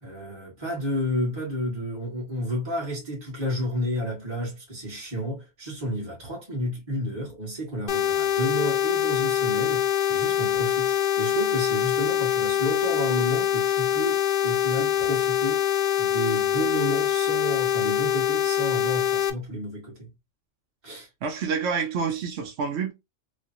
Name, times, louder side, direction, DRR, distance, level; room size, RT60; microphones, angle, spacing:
voice 1, 0.0-15.7 16.0-20.1 20.8-21.1, equal, 20° right, 1.5 m, -31 dB
sound 1, 7.9-19.3, left 11 dB, 60° left, 0.6 m, -24 dB
voice 2, 21.2-22.9, right 5 dB, 65° right, 0.9 m, -28 dB
3.2 x 2.4 x 2.6 m
omnidirectional pair, 1.3 m